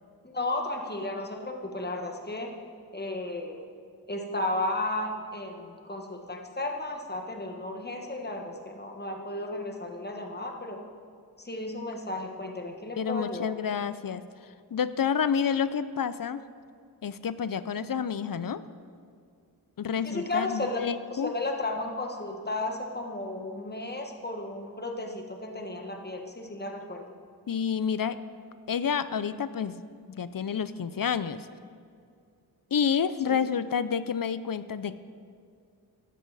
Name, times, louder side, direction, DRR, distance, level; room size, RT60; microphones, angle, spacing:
voice 1, 0.2-2.5 2.9-3.7 4.1-10.8 11.4-13.5 20.0-27.1 33.3-33.4, left 2 dB, 25° left, 2 dB, 1.4 m, -34 dB
voice 2, 13.0-14.2 14.7-16.4 17.0-18.6 19.8-21.3 27.5-28.2 28.7-29.8 30.1-31.5 32.7-35.0, left 7 dB, 60° left, 14 dB, 0.5 m, -29 dB
14.0 x 10.5 x 4.1 m, 2.3 s
wide cardioid pair, 60°, 38 cm